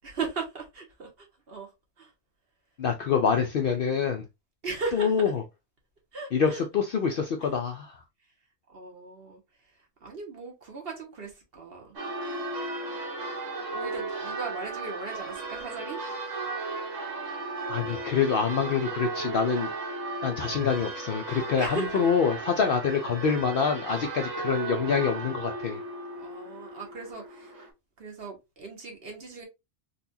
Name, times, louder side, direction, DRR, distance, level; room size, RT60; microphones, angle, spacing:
voice 1, 0.0-2.1 4.6-5.2 6.1-6.6 7.4-7.5 8.7-12.0 13.7-16.4 21.6-22.1 24.0-24.1 26.1-27.5 28.0-29.4, right 4 dB, 50° right, 1.3 m, -38 dB
voice 2, 2.8-4.2 4.9-5.3 6.3-8.0 17.7-19.9 20.2-25.8, left 6 dB, 60° left, 0.6 m, -26 dB
Church bell, 12.0-27.7, right 3 dB, 70° right, 1.5 m, -35 dB
4.0 x 2.3 x 2.6 m
omnidirectional pair, 1.3 m